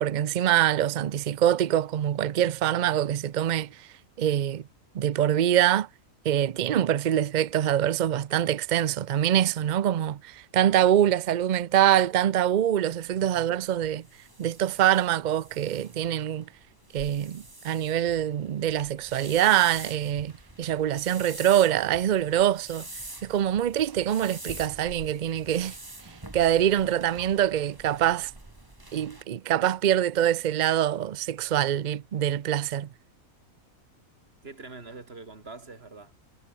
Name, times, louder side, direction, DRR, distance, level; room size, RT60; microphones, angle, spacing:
voice 1, 0.0-3.9 4.2-4.6 4.9-5.9 6.2-14.0 14.4-16.5 16.9-20.3 20.6-22.9 23.2-25.8 26.3-28.3 28.9-32.9, right 11 dB, 80° right, 0.4 m, -24 dB
sound 1, 13.1-29.2, right 2 dB, 15° right, 1.7 m, -46 dB
voice 2, 34.4-36.1, right 3 dB, 45° right, 2.8 m, -44 dB
omnidirectional pair, 1.5 m